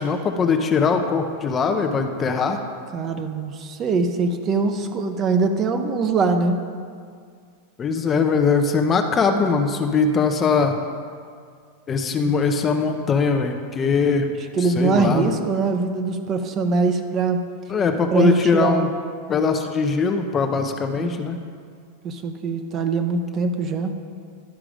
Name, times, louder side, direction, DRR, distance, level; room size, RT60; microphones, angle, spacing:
voice 1, 0.0-2.6 7.8-10.8 11.9-14.3 14.8-15.3 17.7-18.9 19.3-21.4, left 5 dB, 25° left, 5 dB, 0.6 m, -21 dB
voice 2, 2.9-6.6 14.5-17.4 18.1-18.9 20.9-21.3 22.0-24.0, right 4 dB, 35° right, 7 dB, 0.7 m, -22 dB
11.5 x 4.9 x 5.0 m, 2.1 s
hypercardioid pair, 125°, 0 cm